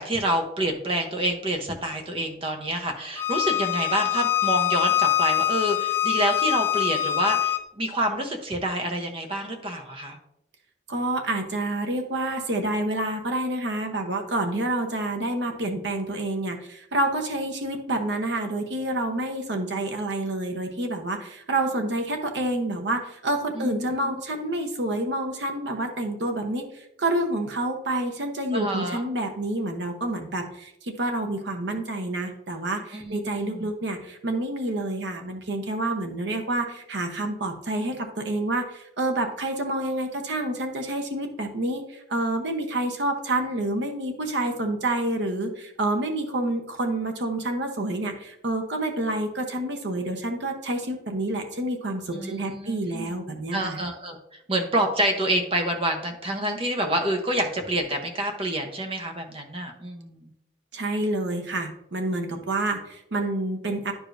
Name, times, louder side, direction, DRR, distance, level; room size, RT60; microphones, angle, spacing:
voice 1, 0.0-10.2 23.5-24.1 28.5-29.0 32.9-33.7 52.1-53.1 53.5-54.2 54.5-60.3 62.3-62.4, right 1 dB, 30° right, 4 dB, 0.9 m, -28 dB
Bowed string instrument, 3.2-7.6, left 12 dB, 10° left, 0.3 m, -24 dB
voice 2, 10.9-53.8 60.7-63.9, right 1 dB, 65° right, 4 dB, 0.9 m, -28 dB
10.5 x 4.9 x 2.6 m, 0.79 s
head